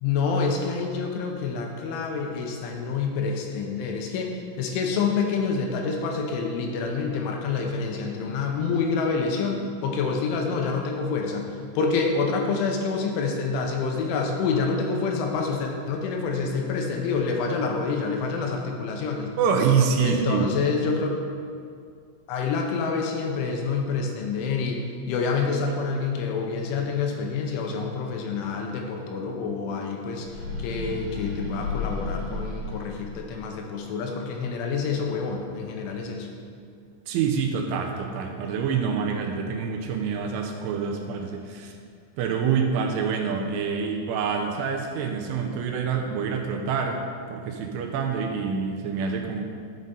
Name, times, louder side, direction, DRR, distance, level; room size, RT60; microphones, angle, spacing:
voice 1, 0.0-11.5 11.8-19.3 20.0-21.2 22.3-24.8 25.1-30.3 30.6-36.3, left 4 dB, 85° left, 2 dB, 3.3 m, -27 dB
voice 2, 19.4-20.5 37.1-41.7 42.2-49.4, right 6 dB, 80° right, 2 dB, 3.2 m, -26 dB
sound 1, 30.2-33.5, left 3 dB, 50° right, 3.1 m, -33 dB
12.0 x 7.4 x 4.0 m, 2.2 s
omnidirectional pair, 5.7 m